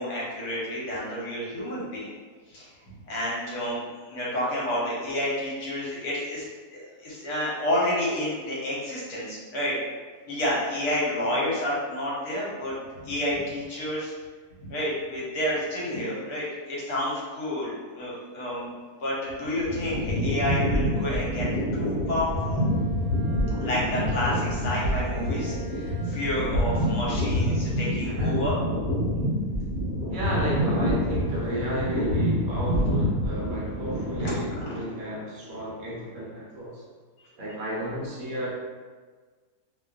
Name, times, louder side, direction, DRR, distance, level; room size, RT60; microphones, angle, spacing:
voice 1, 0.0-2.1 2.5-2.7 3.1-9.8 10.3-12.7 13.0-14.1 14.6-18.7 19.0-21.5 21.7-22.7 23.6-28.5 32.8-33.0 34.2-34.8, left 1 dB, 75° left, -6 dB, 1.2 m, -30 dB
sound 1, 19.3-34.7, equal, 45° left, 1.0 m, -27 dB
Bowed string instrument, 21.7-27.7, right 4 dB, 15° left, 0.7 m, -43 dB
voice 2, 28.1-28.6 30.1-36.8 37.4-38.5, equal, 70° right, -5 dB, 1.0 m, -33 dB
2.8 x 2.3 x 2.3 m, 1.4 s
omnidirectional pair, 1.7 m